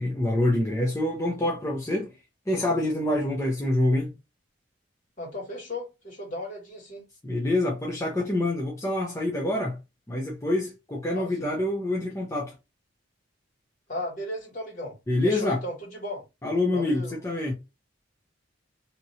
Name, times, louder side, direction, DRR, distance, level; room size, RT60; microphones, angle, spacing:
voice 1, 0.0-2.1 2.5-4.1 7.2-9.8 10.1-12.5 15.1-15.6 16.4-17.5, left 1 dB, 15° left, 0.6 m, -26 dB
voice 2, 5.2-7.0 11.1-11.5 13.9-15.0 15.2-16.2 16.7-17.2, left 1 dB, 40° left, 1.9 m, -35 dB
2.9 x 2.8 x 2.7 m
head